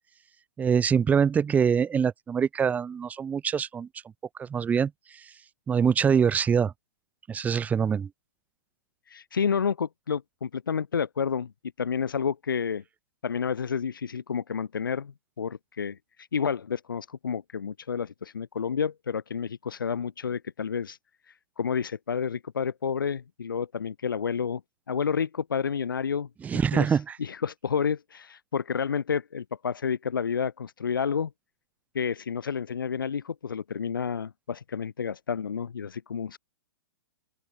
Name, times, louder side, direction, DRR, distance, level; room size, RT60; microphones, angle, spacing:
voice 1, 0.6-3.9 4.4-4.9 5.7-6.7 7.3-8.1 26.4-27.2, right 7 dB, 15° right, 1.1 m, -24 dB
voice 2, 9.1-11.5 11.8-12.8 13.2-21.0 21.6-24.6 24.9-26.3 26.7-31.3 31.9-36.4, left 6 dB, 70° left, 3.1 m, -30 dB
open air
figure-of-eight pair, 115°, 12 cm